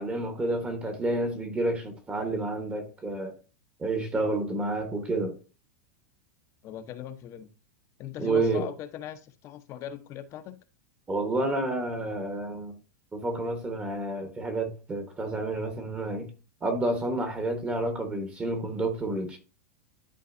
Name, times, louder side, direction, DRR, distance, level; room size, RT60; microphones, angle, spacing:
voice 1, 0.0-3.3 3.8-5.4 8.2-8.7 11.1-12.8 13.1-16.3 16.6-19.4, right 2 dB, 15° right, 1.1 m, -29 dB
voice 2, 6.6-7.5 8.0-10.6, left 10 dB, 35° left, 0.8 m, -40 dB
11.0 x 3.8 x 2.6 m
supercardioid pair, 145°, 9 cm